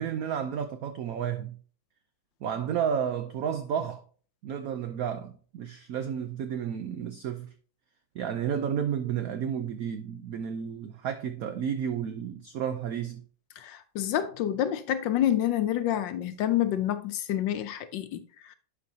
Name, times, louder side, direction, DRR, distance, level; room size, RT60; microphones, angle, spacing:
voice 1, 0.0-1.6 2.4-4.0 4.4-7.5 8.1-13.2, right 8 dB, 85° right, 0.7 m, -32 dB
voice 2, 13.6-18.6, left 11 dB, 75° left, 1.2 m, -28 dB
11.0 x 4.6 x 2.7 m
omnidirectional pair, 2.1 m